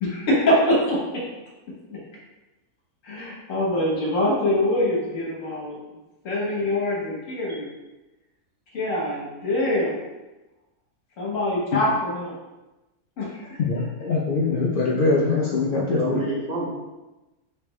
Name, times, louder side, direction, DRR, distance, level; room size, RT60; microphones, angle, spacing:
voice 1, 0.0-1.2 1.9-2.0 3.0-5.8 6.2-7.7 8.7-9.9 11.2-12.3 13.2-13.6, left 1 dB, 60° left, -5 dB, 1.5 m, -24 dB
voice 2, 13.6-16.2, left 3 dB, 85° left, -3 dB, 0.4 m, -23 dB
voice 3, 15.6-16.7, right 2 dB, 55° right, -9 dB, 1.9 m, -29 dB
4.1 x 3.4 x 3.1 m, 1.1 s
omnidirectional pair, 1.5 m